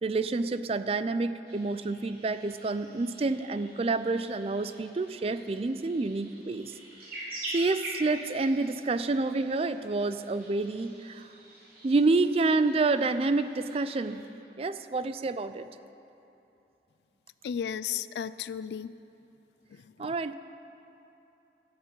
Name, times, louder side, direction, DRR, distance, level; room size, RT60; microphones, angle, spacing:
voice 1, 0.0-6.7 7.5-11.3 11.8-14.2 14.6-15.7 20.0-20.3, right 3 dB, 35° right, 12 dB, 0.4 m, -28 dB
sound 1, 1.5-14.2, right 1 dB, 55° right, 3.3 m, -45 dB
voice 2, 17.4-18.9 19.7-20.3, left 8 dB, 70° left, 16 dB, 0.3 m, -35 dB
13.5 x 6.8 x 8.0 m, 2.9 s
head